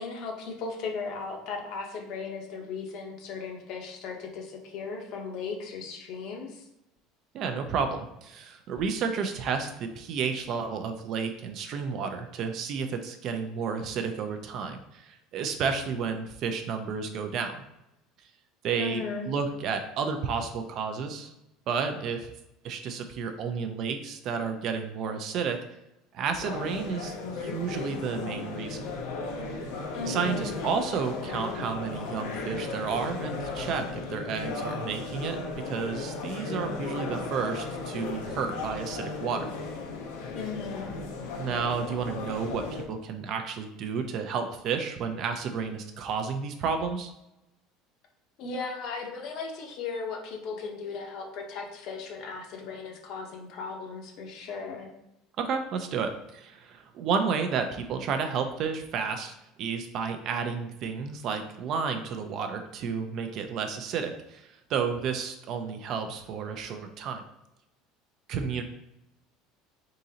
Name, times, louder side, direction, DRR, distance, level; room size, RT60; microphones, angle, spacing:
voice 1, 0.0-6.6 18.8-19.3 29.9-30.5 40.3-40.9 48.4-54.9, left 4 dB, 45° left, 2 dB, 0.7 m, -36 dB
voice 2, 7.3-17.6 18.6-21.3 21.7-22.3 22.6-25.6 26.1-28.8 30.0-35.4 35.6-39.5 41.4-47.1 55.4-67.2 68.3-68.6, right 6 dB, 40° right, 6 dB, 0.4 m, -31 dB
sound 1, 26.4-42.8, left 4 dB, 80° left, 0.7 m, -35 dB
4.0 x 3.7 x 2.8 m, 0.88 s
cardioid pair, 175°, 0 cm